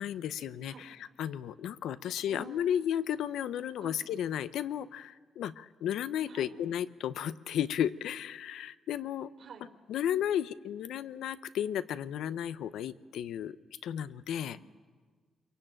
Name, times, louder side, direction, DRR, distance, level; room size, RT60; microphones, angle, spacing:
voice 1, 0.0-9.3 9.9-13.6 13.8-14.6, left 10 dB, 90° left, 14 dB, 0.7 m, -34 dB
voice 2, 2.3-2.8 3.8-4.0 6.3-6.5 9.4-9.7 14.4-14.7, right 5 dB, 65° right, 3 dB, 4.1 m, -49 dB
26.5 x 23.0 x 8.9 m, 1.5 s
cardioid pair, 120°, 0 cm